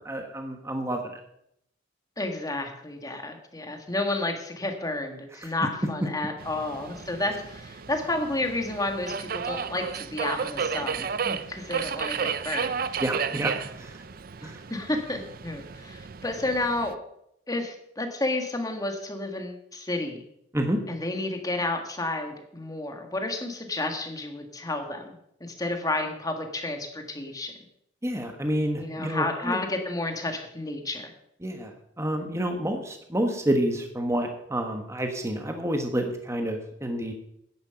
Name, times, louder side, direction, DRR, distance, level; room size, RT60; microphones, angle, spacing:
voice 1, 0.0-1.2 5.4-5.5 13.0-14.0 14.4-14.6 20.5-20.8 28.0-29.6 31.4-31.7 32.0-37.1, right 1 dB, 15° right, 4 dB, 1.3 m, -29 dB
voice 2, 2.2-12.7 14.4-17.0 17.5-20.2 20.9-27.5 28.8-31.1, left 2 dB, 20° left, 4 dB, 1.7 m, -31 dB
Subway metro underground, 6.4-16.9, right 6 dB, 50° right, 0.5 m, -33 dB
10.5 x 10.5 x 5.8 m, 0.75 s
head